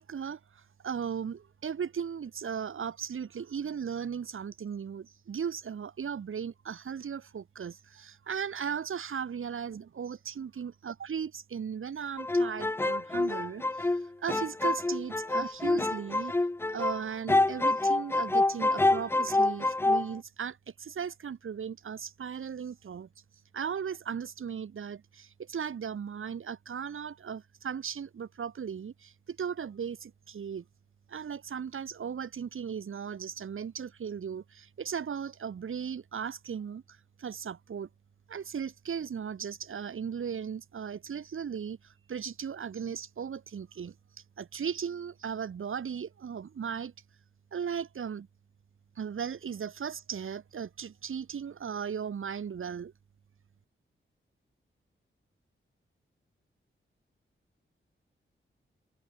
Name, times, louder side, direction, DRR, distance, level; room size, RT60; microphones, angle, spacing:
voice 1, 0.0-16.3 16.7-23.1 23.5-30.6 31.1-37.9 38.3-43.9 44.4-46.9 47.5-48.3 49.0-52.9, right 7 dB, 75° right, 4.8 m, -37 dB
sound 1, 12.2-17.0 17.3-20.1, left 2 dB, 10° left, 0.4 m, -27 dB
wide cardioid pair, 165°, 21 cm